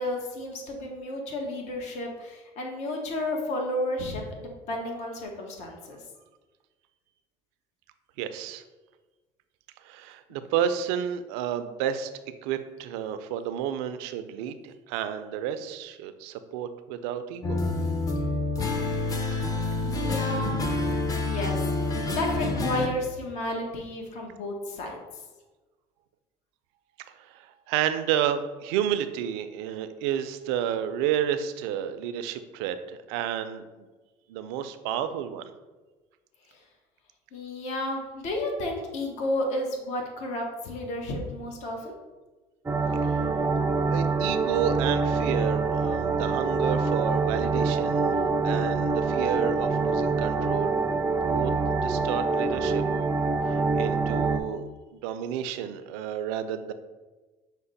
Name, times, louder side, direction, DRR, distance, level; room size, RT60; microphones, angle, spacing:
voice 1, 0.0-6.0 19.8-20.8 21.3-25.0 36.5-36.6 37.3-41.9, left 1 dB, 60° left, 1 dB, 0.9 m, -32 dB
voice 2, 8.2-8.6 9.9-12.1 12.4-17.6 27.3-33.6 34.3-35.4 43.9-48.1 48.4-50.7 51.0-51.5 51.8-52.8 53.5-54.6 54.9-56.7, right 9 dB, 85° right, 10 dB, 0.4 m, -31 dB
sound 1, 17.4-22.9, left 3 dB, 25° left, 0.6 m, -27 dB
sound 2, 42.7-54.4, right 4 dB, 15° right, 0.4 m, -25 dB
5.8 x 2.1 x 3.9 m, 1.2 s
supercardioid pair, 95°, 13 cm